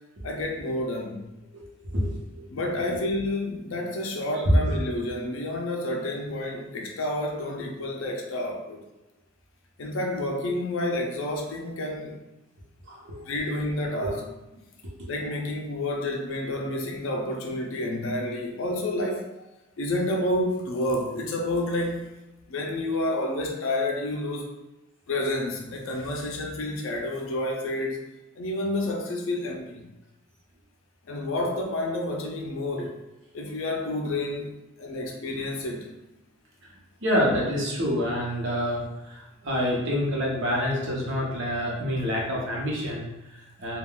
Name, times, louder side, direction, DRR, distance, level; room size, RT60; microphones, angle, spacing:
voice 1, 0.2-1.3 2.5-8.8 9.8-12.2 13.3-14.2 15.1-19.3 19.8-22.1 22.5-24.5 25.1-28.0 28.4-29.9 31.1-33.0 33.3-34.5 34.8-35.9, left 1 dB, 65° left, 1 dB, 0.4 m, -29 dB
voice 2, 1.8-2.4 4.4-4.8 12.9-13.5 14.0-14.1 15.0-15.1 37.0-43.8, equal, 55° right, -3 dB, 0.8 m, -27 dB
3.5 x 2.3 x 2.3 m, 1.0 s
head